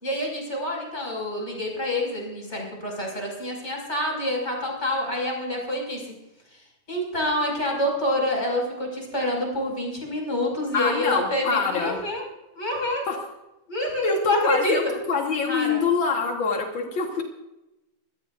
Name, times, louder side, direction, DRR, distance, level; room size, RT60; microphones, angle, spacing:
voice 1, 0.0-6.1 6.5-12.2 12.5-13.0 13.7-14.8 15.5-15.8, left 1 dB, 15° left, 0 dB, 5.8 m, -27 dB
voice 2, 10.7-12.0 13.1-13.2 14.0-14.8 15.1-17.2, left 5 dB, 60° left, 2 dB, 1.2 m, -25 dB
24.5 x 18.0 x 2.6 m, 0.95 s
omnidirectional pair, 4.4 m